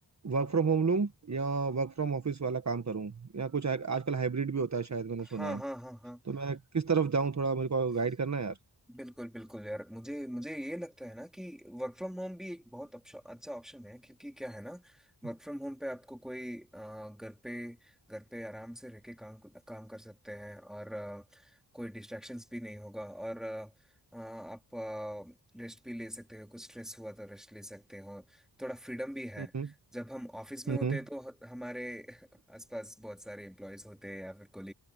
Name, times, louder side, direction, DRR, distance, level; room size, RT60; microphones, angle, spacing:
voice 1, 0.2-5.6 6.2-8.6 29.4-29.7 30.7-31.0, right 5 dB, 40° right, 1.3 m, -31 dB
voice 2, 5.3-6.2 8.9-23.7 24.1-34.7, equal, ahead, 3.7 m, -42 dB
wide cardioid pair, 100°, 42 cm